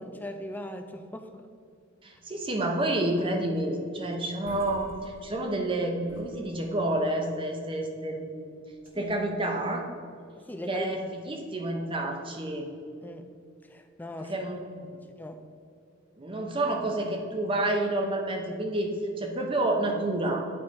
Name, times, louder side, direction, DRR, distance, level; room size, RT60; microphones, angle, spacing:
voice 1, 0.0-1.4 8.9-9.1 10.3-10.9 13.0-13.3 13.7-14.3 14.8-15.4, left 1 dB, 10° left, 6 dB, 0.4 m, -39 dB
voice 2, 2.0-8.5 9.0-9.9 10.7-12.7 14.2-15.0 16.2-20.4, right 1 dB, 25° right, 2 dB, 0.8 m, -29 dB
sound 1, 4.0-4.1 4.3-5.7 6.0-7.0 8.7-9.3, left 1 dB, 45° left, 1.2 m, -50 dB
8.5 x 4.3 x 4.7 m, 2.4 s
head